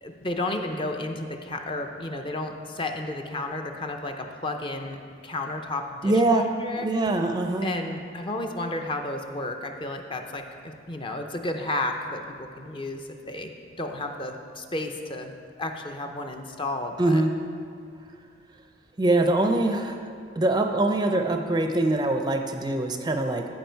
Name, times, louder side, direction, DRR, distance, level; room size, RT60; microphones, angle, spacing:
voice 1, 0.0-5.0 5.2-6.9 7.6-15.3 15.6-17.2, left 2 dB, 25° left, 4 dB, 0.6 m, -32 dB
voice 2, 6.0-6.4 6.8-7.7 17.0-17.3 19.0-20.0 20.4-23.5, right 2 dB, 20° right, 5 dB, 0.5 m, -23 dB
14.5 x 5.0 x 4.5 m, 2.2 s
head